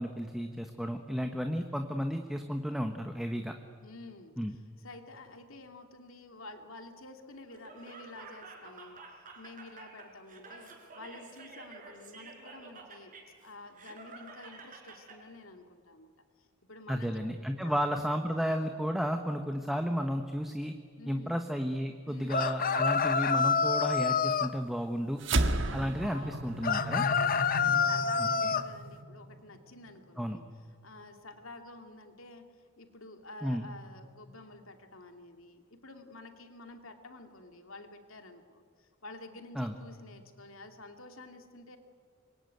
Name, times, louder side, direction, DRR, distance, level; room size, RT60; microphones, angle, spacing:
voice 1, 0.0-3.5 4.4-4.6 16.9-20.7 21.1-25.2 25.7-27.0 28.2-28.6 30.2-30.4 33.4-33.7 39.6-39.7, equal, ahead, 5 dB, 1.1 m, -33 dB
voice 2, 3.8-4.3 4.8-13.1 13.4-16.1 16.4-17.2 17.6-17.9 21.0-21.4 22.0-22.5 26.1-26.4 26.7-30.4 30.8-32.5 32.8-41.8, left 2 dB, 75° left, 5 dB, 2.7 m, -50 dB
Laughter, 7.5-15.2, right 4 dB, 40° right, 4.6 m, -50 dB
sound 1, 22.3-24.5 26.6-28.7, left 5 dB, 40° left, 0.8 m, -27 dB
sound 2, 25.2-29.8, right 2 dB, 60° right, 1.6 m, -34 dB
26.5 x 23.0 x 9.4 m, 2.1 s
head